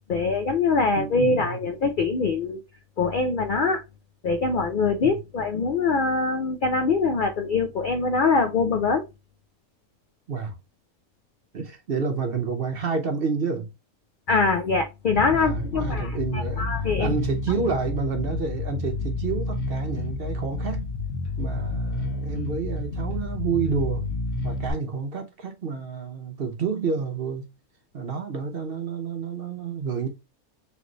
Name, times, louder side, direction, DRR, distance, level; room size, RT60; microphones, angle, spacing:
voice 1, 0.1-2.6 3.0-3.8 4.2-9.0 14.3-17.1, left 4 dB, 70° left, 0.4 m, -23 dB
voice 2, 1.0-1.6 5.0-5.2 10.3-10.6 11.5-13.7 15.3-16.7 17.0-20.9 21.4-24.0 24.4-27.5 27.9-30.1, right 5 dB, 50° right, 0.8 m, -29 dB
Bass guitar, 15.1-24.7, left 3 dB, 55° left, 1.2 m, -30 dB
3.3 x 3.2 x 3.7 m
omnidirectional pair, 1.5 m